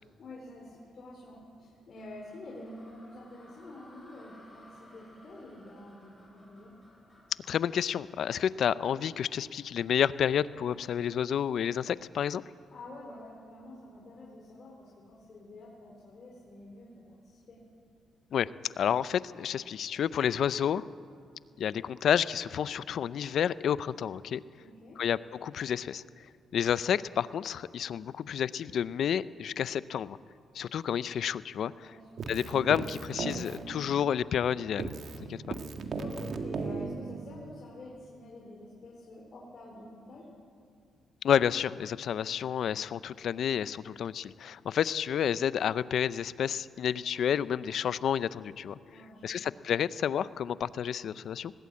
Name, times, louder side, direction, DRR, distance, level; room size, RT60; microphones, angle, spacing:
voice 1, 0.2-6.7 12.7-17.6 24.6-25.0 31.8-32.3 36.0-40.3 48.9-49.5, left 2 dB, 50° left, -4 dB, 4.3 m, -48 dB
sound 1, 2.0-9.1, left 1 dB, ahead, 7.8 m, -58 dB
voice 2, 7.5-12.4 18.3-18.5 18.8-20.8 21.6-24.4 25.0-26.0 26.5-30.2 30.5-31.9 32.3-34.9 35.3-35.6 41.2-48.7 49.2-51.5, left 9 dB, 65° left, 17 dB, 0.5 m, -30 dB
Keyboard (musical), 32.2-34.5 34.8-37.6, right 4 dB, 55° right, 1.9 m, -37 dB
20.0 x 18.5 x 8.6 m, 2.2 s
cardioid pair, 90°, 0 cm